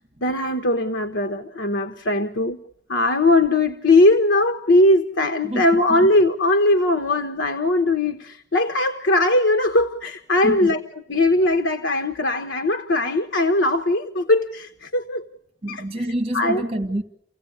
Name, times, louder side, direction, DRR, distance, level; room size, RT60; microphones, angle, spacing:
voice 1, 0.2-2.6 2.9-10.8 11.1-15.3 15.7-15.8 16.3-16.6, left 2 dB, 80° left, 1.2 m, -20 dB
voice 2, 5.4-6.1 10.4-10.7 15.6-17.0, right 1 dB, 30° right, 2.1 m, -27 dB
29.5 x 16.5 x 8.6 m
head